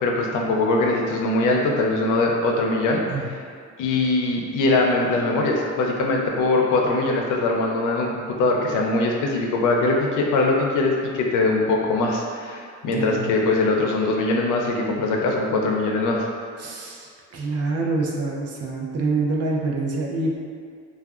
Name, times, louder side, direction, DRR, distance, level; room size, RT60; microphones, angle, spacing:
voice 1, 0.0-3.0 3.8-16.2, left 2 dB, 85° left, 0 dB, 0.5 m, -22 dB
voice 2, 12.9-13.3 16.6-20.4, right 3 dB, 55° right, -2 dB, 0.6 m, -26 dB
3.3 x 2.2 x 2.4 m, 2.1 s
cardioid pair, 90°, 30 cm